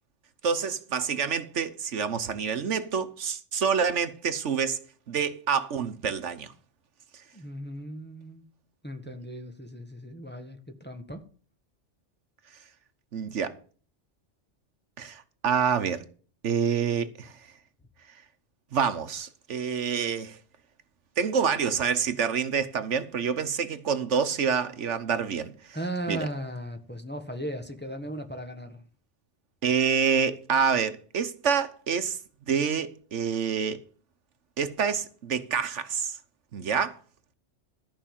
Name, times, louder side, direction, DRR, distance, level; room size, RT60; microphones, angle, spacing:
voice 1, 0.4-4.8 5.1-6.5 13.1-13.5 15.0-16.0 16.4-17.3 18.7-20.4 21.2-25.5 26.1-26.2 29.6-32.2 32.5-33.8 34.6-36.1 36.5-37.0, right 6 dB, 80° right, 1.4 m, -27 dB
voice 2, 7.3-8.4 8.8-11.2 25.7-28.8, right 1 dB, 10° left, 1.4 m, -37 dB
13.5 x 5.5 x 7.4 m
omnidirectional pair, 1.2 m